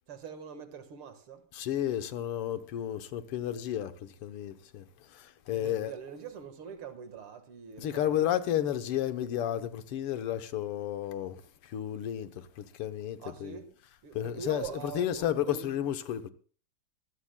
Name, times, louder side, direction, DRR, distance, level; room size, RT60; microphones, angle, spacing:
voice 1, 0.1-1.4 5.5-8.3 13.2-13.7 14.0-15.7, right 7 dB, 75° right, 2.4 m, -43 dB
voice 2, 1.5-5.9 7.8-13.6 14.1-16.3, left 11 dB, 85° left, 1.9 m, -32 dB
24.0 x 14.5 x 2.2 m
omnidirectional pair, 2.4 m